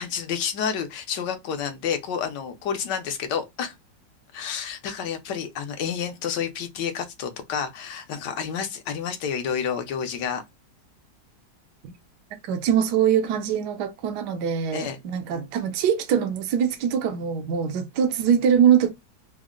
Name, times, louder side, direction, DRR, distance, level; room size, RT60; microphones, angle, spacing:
voice 1, 0.0-3.7 4.3-10.4 14.7-15.0, left 7 dB, 75° left, 1.4 m, -29 dB
voice 2, 12.5-18.9, right 8 dB, 75° right, 1.2 m, -23 dB
3.8 x 2.1 x 3.7 m
omnidirectional pair, 1.9 m